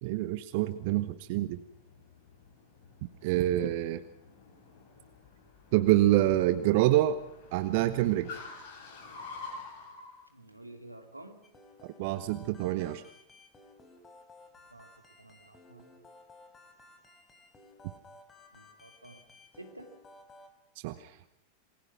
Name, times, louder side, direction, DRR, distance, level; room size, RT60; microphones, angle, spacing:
voice 1, 0.0-1.6 3.2-4.0 5.7-7.2 7.5-8.4 12.0-13.0 20.8-21.1, right 14 dB, 50° right, 13 dB, 1.0 m, -26 dB
Car, 1.2-10.2, left 4 dB, 45° left, 7.4 m, -49 dB
voice 2, 10.3-11.4 14.7-14.9 15.2-15.9 18.5-19.2 19.5-19.9, right 1 dB, 85° right, 6 dB, 2.7 m, -50 dB
sound 1, 11.4-20.5, left 2 dB, 15° left, 4.5 m, -56 dB
28.0 x 21.0 x 6.0 m, 0.81 s
figure-of-eight pair, 90°, 0 cm